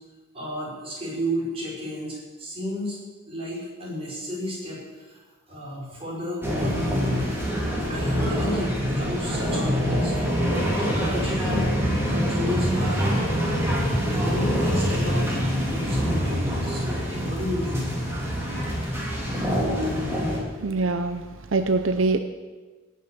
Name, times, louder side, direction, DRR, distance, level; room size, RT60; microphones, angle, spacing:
voice 1, 0.3-3.0 3.3-5.2 5.5-7.3 7.9-10.1 10.8-11.7 12.1-13.1 13.9-15.3 15.6-18.3 19.8-19.9, left 1 dB, 30° right, -4 dB, 4.5 m, -32 dB
sound 1, 6.4-20.4, equal, 10° right, 3.0 m, -25 dB
voice 2, 20.6-21.3 21.5-22.2, right 3 dB, 80° right, 8 dB, 0.6 m, -23 dB
17.5 x 6.6 x 6.8 m, 1.3 s
head